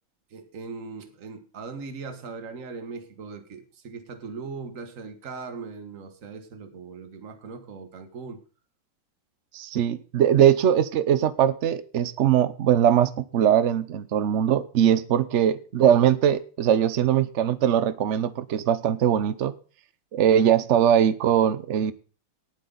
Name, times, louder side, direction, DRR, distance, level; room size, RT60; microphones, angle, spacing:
voice 1, 0.3-8.4, right 4 dB, 45° right, 7 dB, 1.7 m, -39 dB
voice 2, 9.5-19.5 20.1-21.9, right 9 dB, 70° right, 15 dB, 0.6 m, -21 dB
18.5 x 8.0 x 4.0 m, 0.39 s
omnidirectional pair, 2.2 m